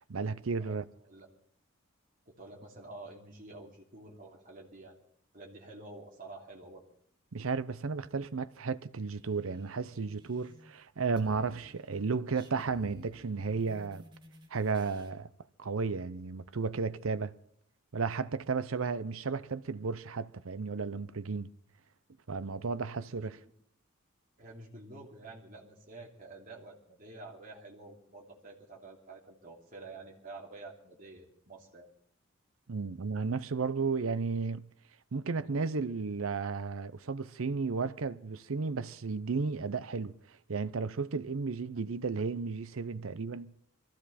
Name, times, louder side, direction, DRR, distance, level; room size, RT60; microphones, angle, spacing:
voice 1, 0.1-0.8 7.3-14.0 14.5-15.3 15.6-17.3 17.9-21.5 22.3-23.4 32.7-34.7 35.1-40.2 40.5-43.5, right 4 dB, 70° right, 0.7 m, -33 dB
voice 2, 2.3-5.0 5.3-6.8 22.9-23.5 24.4-31.9, right 2 dB, 40° right, 3.1 m, -49 dB
sound 1, 9.1-10.8 11.0-15.1, equal, 20° right, 2.2 m, -55 dB
22.5 x 15.0 x 4.2 m
head